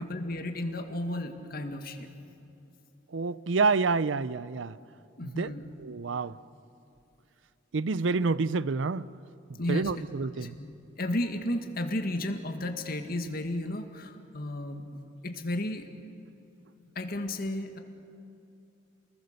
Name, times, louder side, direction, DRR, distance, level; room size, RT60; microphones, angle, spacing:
voice 1, 0.0-2.1 5.2-5.7 9.6-10.1 10.4-10.7 11.0-14.8 15.2-15.9 17.0-17.8, left 1 dB, 55° left, 5 dB, 1.9 m, -33 dB
voice 2, 3.1-4.8 5.2-5.5 5.8-6.4 7.7-9.1 9.7-10.6, right 4 dB, 75° right, 18 dB, 0.6 m, -28 dB
29.0 x 21.0 x 6.6 m, 2.8 s
head